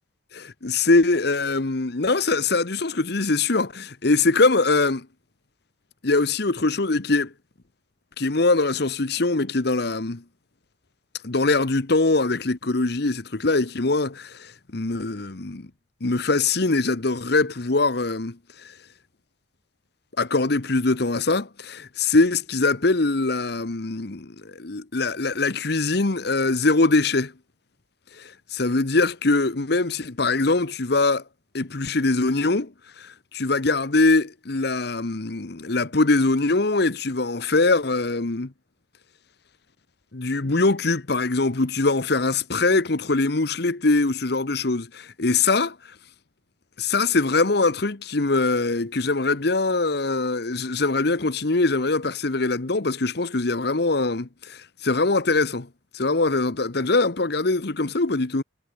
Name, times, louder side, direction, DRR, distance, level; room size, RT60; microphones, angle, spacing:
voice 1, 0.3-5.1 6.0-7.3 8.2-10.2 11.2-15.7 16.0-18.4 20.2-27.3 28.2-31.2 31.5-32.7 33.0-38.5 40.1-45.7 46.8-55.7 55.9-58.4, left 3 dB, 55° left, 1.1 m, -22 dB
head